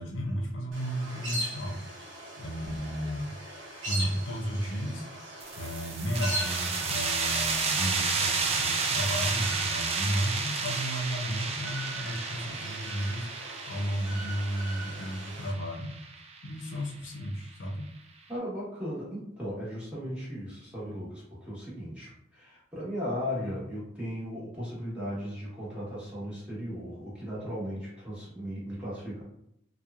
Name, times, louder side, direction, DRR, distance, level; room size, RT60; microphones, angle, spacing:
voice 1, 0.0-3.3 3.9-5.1 5.5-15.9 16.4-17.9, equal, 85° left, 1 dB, 0.5 m, -33 dB
sound 1, 0.7-15.5, right 1 dB, 90° right, 0.8 m, -40 dB
sound 2, 5.4-16.7, right 4 dB, 30° right, 0.3 m, -32 dB
voice 2, 18.3-29.2, equal, 5° right, -8 dB, 1.0 m, -36 dB
2.9 x 2.1 x 2.3 m, 0.76 s
head